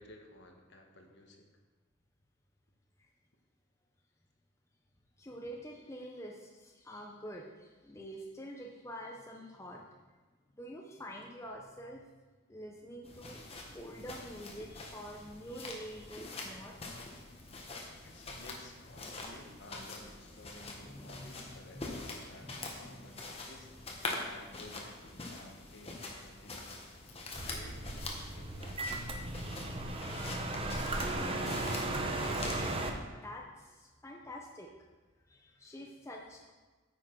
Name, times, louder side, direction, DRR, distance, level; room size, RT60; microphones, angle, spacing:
voice 1, 0.0-1.4 18.0-24.0 24.2-26.8 27.5-29.0, left 2 dB, 55° left, 3 dB, 1.2 m, -54 dB
voice 2, 5.2-10.0 10.5-12.0 12.5-13.4 13.7-16.8 17.7-17.8 20.6-22.0 22.4-23.1 31.0-31.8 32.1-34.7 35.3-36.5, equal, 15° left, 0 dB, 0.6 m, -47 dB
sound 1, 13.0-32.8, left 2 dB, 30° left, 1.1 m, -45 dB
sound 2, 27.3-32.9, right 2 dB, 25° right, 0.7 m, -36 dB
9.2 x 6.4 x 4.6 m, 1.3 s
head